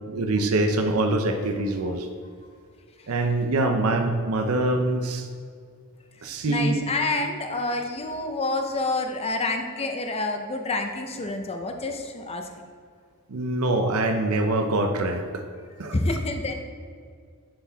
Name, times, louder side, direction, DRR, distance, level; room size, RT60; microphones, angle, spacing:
voice 1, 0.1-2.1 3.1-5.3 6.2-6.8 13.3-15.4 15.8-15.9, right 2 dB, 70° right, 5 dB, 0.6 m, -24 dB
voice 2, 6.1-12.5 15.8-16.6, left 2 dB, 25° left, 4 dB, 0.6 m, -28 dB
11.0 x 4.5 x 3.5 m, 2.1 s
head